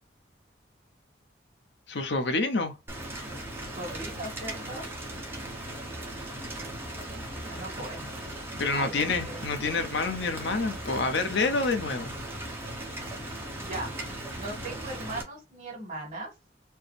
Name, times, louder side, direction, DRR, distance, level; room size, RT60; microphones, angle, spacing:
voice 1, 1.9-2.7 8.6-12.1, left 3 dB, 75° left, 0.8 m, -28 dB
Rain, 2.9-15.2, right 1 dB, 10° right, 0.9 m, -38 dB
voice 2, 3.6-4.9 7.5-8.1 8.5-9.4 13.6-13.9 14.3-16.3, right 2 dB, 40° right, 2.2 m, -38 dB
4.5 x 2.1 x 3.4 m
head